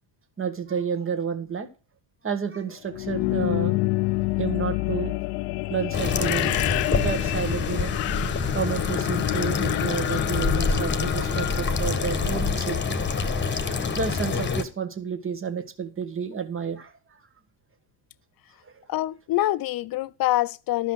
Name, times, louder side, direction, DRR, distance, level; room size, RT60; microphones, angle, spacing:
voice 1, 0.4-1.7 2.2-3.8 4.4-5.1 5.7-6.6 6.9-8.0 8.5-13.5 13.9-16.9 18.6-18.7, right 6 dB, 25° right, 1.7 m, -30 dB
sound 1, 2.9-12.7, left 21 dB, 80° left, 0.6 m, -28 dB
sound 2, 5.9-14.6, left 5 dB, 20° left, 1.5 m, -26 dB
voice 2, 18.9-20.9, left 15 dB, 45° left, 0.7 m, -25 dB
12.5 x 5.6 x 6.3 m
supercardioid pair, 80°, 48 cm